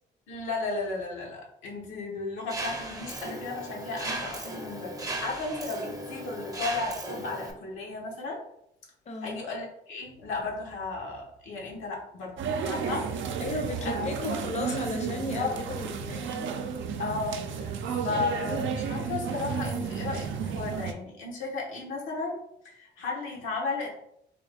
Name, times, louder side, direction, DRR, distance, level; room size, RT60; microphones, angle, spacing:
voice 1, 0.3-4.9 5.2-8.4 9.2-12.4 12.7-13.4 13.8-14.4 14.8-15.5 17.0-22.4 22.6-23.9, left 3 dB, 90° left, -2 dB, 1.1 m, -34 dB
Mechanisms, 2.5-7.5, right 1 dB, 15° right, 0.6 m, -36 dB
voice 2, 9.1-9.4 13.4-16.7, left 2 dB, 35° left, 3 dB, 0.6 m, -35 dB
sound 1, 12.4-20.9, right 6 dB, 75° right, 0.4 m, -32 dB
3.5 x 2.3 x 3.4 m, 0.76 s
cardioid pair, 90°, 20 cm